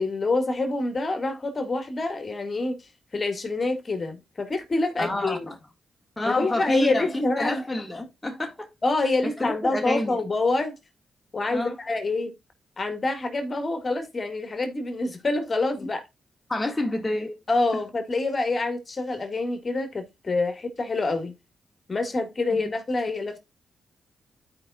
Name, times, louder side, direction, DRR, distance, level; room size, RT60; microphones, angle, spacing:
voice 1, 0.0-5.5 6.2-7.6 8.8-10.7 11.3-12.3 12.8-16.0 17.5-21.3 21.9-23.4, left 2 dB, 45° left, 1.9 m, -26 dB
voice 2, 5.0-5.6 6.2-8.7 9.2-10.2 11.5-11.8 15.8-15.9 16.5-17.4, left 2 dB, 20° left, 1.7 m, -28 dB
12.5 x 5.1 x 2.3 m
supercardioid pair, 55°, 0 cm